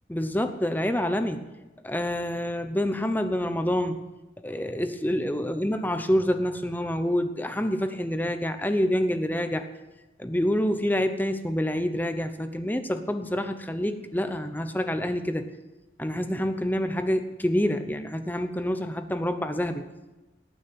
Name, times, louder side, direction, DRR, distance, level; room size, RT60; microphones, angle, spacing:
voice 1, 0.1-1.4 1.8-4.0 4.4-9.7 10.2-15.5 16.0-19.8, equal, 10° left, 9 dB, 0.8 m, -27 dB
18.5 x 6.3 x 9.4 m, 1.1 s
head